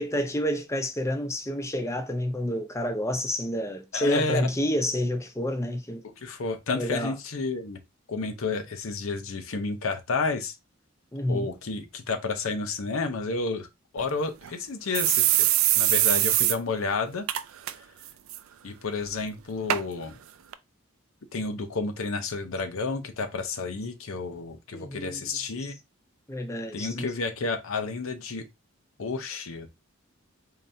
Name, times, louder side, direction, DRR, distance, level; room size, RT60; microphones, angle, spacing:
voice 1, 0.0-6.0 6.7-7.1 11.1-11.5 24.7-25.3 26.3-27.1, equal, 15° left, 0.5 m, -29 dB
voice 2, 3.9-4.5 6.0-7.8 8.1-10.5 11.3-13.7 13.9-15.5 15.7-17.3 18.6-20.2 21.3-25.8 26.7-28.5 29.0-29.7, left 3 dB, 85° left, 0.7 m, -31 dB
sound 1, 14.0-14.1 14.4-14.5 14.9-16.6 16.9-17.0 17.3-17.7 18.1-18.4 19.1-19.2 19.7-19.8 20.5-20.6, right 14 dB, 85° right, 0.4 m, -22 dB
3.9 x 3.2 x 2.6 m
head